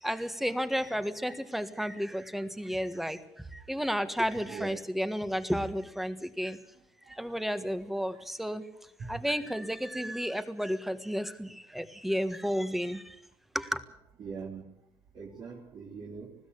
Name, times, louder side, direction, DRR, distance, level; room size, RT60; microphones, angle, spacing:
voice 1, 0.0-3.2 3.5-6.6 7.1-8.6 9.1-13.1 13.5-13.8, equal, ahead, 11 dB, 1.5 m, -32 dB
voice 2, 6.7-7.4 7.7-8.2 9.0-9.3 12.3-12.5 14.2-14.7 15.1-16.3, right 5 dB, 55° right, -3 dB, 3.6 m, -43 dB
20.5 x 15.5 x 8.5 m, 0.78 s
cardioid pair, 110°, 9 cm